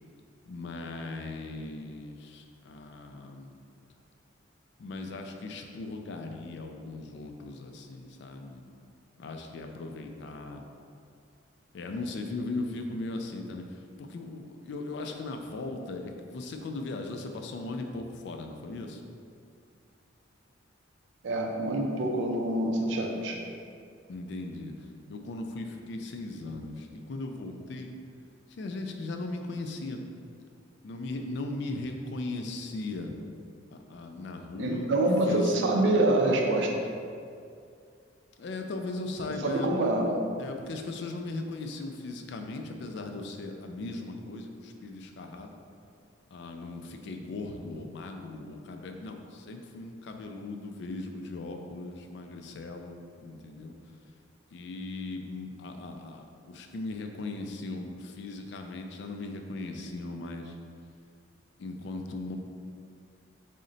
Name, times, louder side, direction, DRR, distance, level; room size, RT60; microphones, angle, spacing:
voice 1, 0.5-3.6 4.8-8.6 9.2-10.6 11.7-19.0 24.1-24.7 25.1-27.9 28.6-30.0 30.8-33.1 33.7-34.9 35.3-35.9 38.4-39.8 40.4-45.5 46.3-53.7 54.5-60.6 61.6-62.4, left 2 dB, 60° left, 4 dB, 0.3 m, -38 dB
voice 2, 21.2-23.4 34.6-36.8 39.4-40.1, right 1 dB, 70° right, 1 dB, 0.4 m, -26 dB
3.8 x 2.1 x 3.8 m, 2.3 s
head